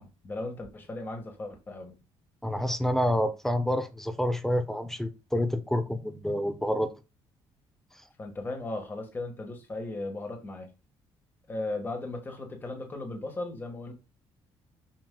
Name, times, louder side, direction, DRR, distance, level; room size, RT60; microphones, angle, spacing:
voice 1, 0.0-2.0 8.2-10.7 11.5-13.9, left 2 dB, 20° left, 1.5 m, -37 dB
voice 2, 2.4-6.9, equal, 5° left, 0.6 m, -28 dB
7.4 x 6.2 x 2.3 m
cardioid pair, 175°, 10 cm